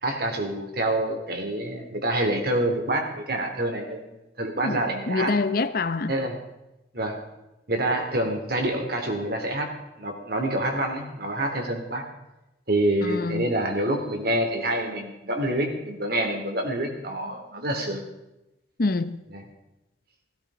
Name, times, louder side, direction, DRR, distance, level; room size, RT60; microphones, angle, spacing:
voice 1, 0.0-4.0 4.4-5.4 6.1-6.4 6.9-7.2 7.7-9.7 10.0-12.0 12.7-18.0 19.3-19.4, right 1 dB, 60° right, 3.4 m, -27 dB
voice 2, 5.1-6.1 13.0-13.5 18.8-19.2, left 3 dB, 55° left, 0.8 m, -25 dB
16.5 x 16.5 x 5.1 m
head